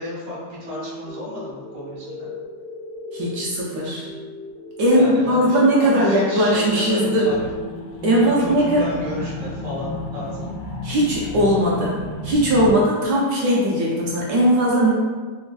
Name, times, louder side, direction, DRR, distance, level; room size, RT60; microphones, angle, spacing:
voice 1, 0.0-2.3 4.9-7.5 8.2-10.5, left 1 dB, 45° right, -8 dB, 0.5 m, -33 dB
sound 1, 0.6-10.6, left 2 dB, 65° left, 0.5 m, -38 dB
voice 2, 3.1-4.1 4.8-7.3 8.0-8.9 10.8-14.9, equal, 70° right, -5 dB, 1.0 m, -19 dB
sound 2, 7.3-12.7, equal, 85° left, 1.3 m, -32 dB
3.3 x 2.2 x 2.3 m, 1.4 s
omnidirectional pair, 2.1 m